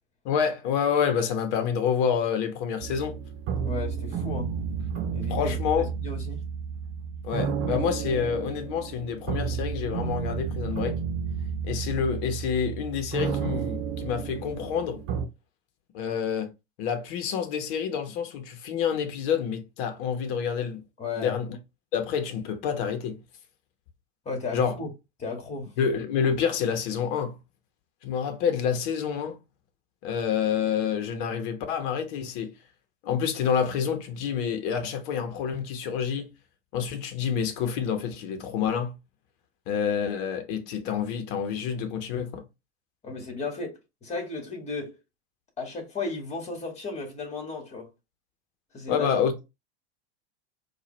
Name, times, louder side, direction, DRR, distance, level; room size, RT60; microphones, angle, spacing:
voice 1, 0.2-3.2 5.3-5.9 7.2-11.0 11.6-15.0 15.9-16.5 16.8-20.8 21.2-21.5 21.9-23.2 24.5-24.8 25.8-27.4 28.0-29.4 30.0-32.5 33.0-36.3 36.7-39.0 39.7-42.4 48.9-49.3, left 7 dB, 55° left, 1.1 m, -28 dB
sound 1, 2.8-15.3, right 6 dB, 40° right, 1.0 m, -32 dB
voice 2, 3.6-4.5 5.1-6.4 21.0-21.4 24.3-24.9 25.2-25.7 43.0-45.0 45.6-47.9 48.7-49.1, left 3 dB, 20° left, 2.0 m, -35 dB
4.6 x 2.6 x 3.1 m
hypercardioid pair, 95°, 33 cm